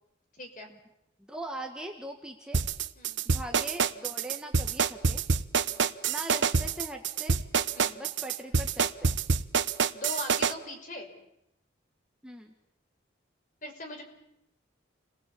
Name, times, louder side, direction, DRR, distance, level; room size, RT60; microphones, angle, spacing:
voice 1, 0.4-0.7 3.0-3.2 5.7-5.9 7.7-8.0 9.9-11.1 13.6-14.0, left 1 dB, 40° left, 4 dB, 5.6 m, -40 dB
voice 2, 1.2-2.6 3.2-5.2 6.1-7.4 7.9-9.2 12.2-12.5, right 1 dB, 5° right, 1 dB, 1.9 m, -41 dB
sound 1, 2.5-10.5, right 5 dB, 70° right, 1.0 m, -26 dB
29.5 x 22.0 x 8.7 m, 0.83 s
head